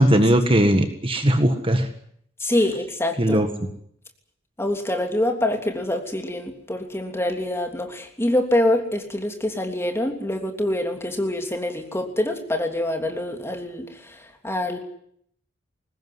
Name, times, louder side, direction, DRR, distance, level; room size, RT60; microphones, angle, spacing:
voice 1, 0.0-1.9 3.2-3.5, right 1 dB, 25° right, 7 dB, 1.7 m, -18 dB
voice 2, 2.4-3.4 4.6-14.2 14.4-14.8, left 1 dB, 15° left, 4 dB, 3.2 m, -25 dB
22.5 x 19.5 x 9.7 m, 0.68 s
head